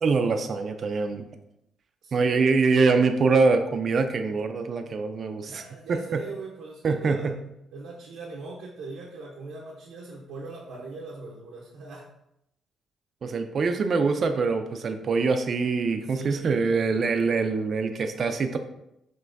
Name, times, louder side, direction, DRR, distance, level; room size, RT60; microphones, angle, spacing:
voice 1, 0.0-1.2 2.1-5.6 5.9-6.2 6.8-7.3 13.2-18.6, right 4 dB, 50° right, 7 dB, 0.4 m, -24 dB
voice 2, 2.0-2.5 5.5-7.4 7.7-12.1 16.0-16.7, right 3 dB, 85° right, -4 dB, 0.7 m, -41 dB
5.6 x 3.0 x 2.6 m, 0.81 s
cardioid pair, 90°, 0 cm